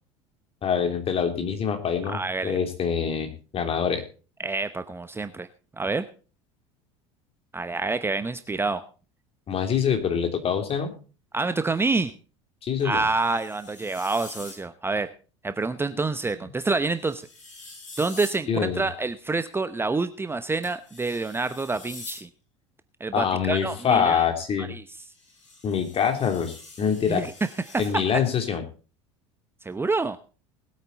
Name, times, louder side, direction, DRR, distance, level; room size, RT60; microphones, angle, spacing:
voice 1, 0.6-4.0 9.5-10.9 12.6-13.0 18.5-18.8 23.1-24.7 25.6-27.2 27.8-28.6, left 7 dB, 40° left, 6 dB, 3.3 m, -25 dB
voice 2, 2.1-2.6 4.4-5.5 5.8-6.0 7.5-8.8 11.3-12.1 12.8-15.1 15.4-17.2 18.0-22.3 23.0-24.3 24.6-24.8 27.1-27.3 27.7-28.0 29.6-30.2, right 3 dB, 15° right, 11 dB, 0.9 m, -27 dB
sound 1, 12.8-14.6 16.8-18.4 20.6-22.2 25.0-28.0, left 2 dB, 90° left, 5.4 m, -45 dB
20.5 x 8.7 x 4.1 m, 0.37 s
hypercardioid pair, 75°, 16 cm